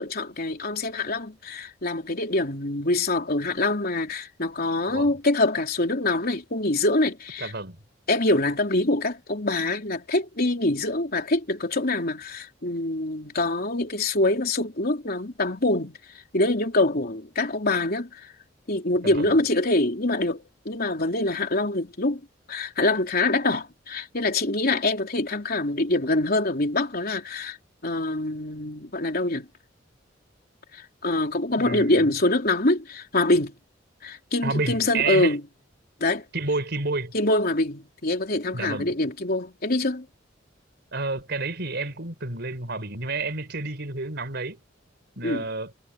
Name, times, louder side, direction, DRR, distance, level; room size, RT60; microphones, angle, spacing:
voice 1, 0.0-7.5 8.1-15.9 16.3-18.3 18.7-22.2 22.5-27.6 27.8-29.5 30.7-33.5 34.0-35.4 36.0-36.2 37.1-40.1 45.2-45.4, left 2 dB, 55° left, 3.6 m, -25 dB
voice 2, 7.4-7.8 19.0-19.4 31.6-32.1 34.4-35.3 36.3-37.1 38.5-39.0 40.9-44.6 45.2-45.7, right 3 dB, 60° right, 4.9 m, -30 dB
head